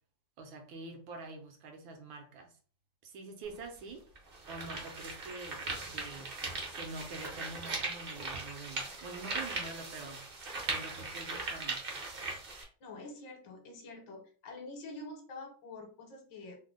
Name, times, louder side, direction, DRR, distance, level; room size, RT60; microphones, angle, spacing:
voice 1, 0.4-2.5 3.0-4.1 4.5-6.3 6.7-10.2 10.7-11.8, right 3 dB, 80° right, 1.5 m, -46 dB
sound 1, 3.4-3.5 4.2-12.6, right 3 dB, 55° right, 0.6 m, -39 dB
voice 2, 12.8-16.6, left 2 dB, 70° left, 1.4 m, -46 dB
3.6 x 2.0 x 3.6 m
omnidirectional pair, 2.1 m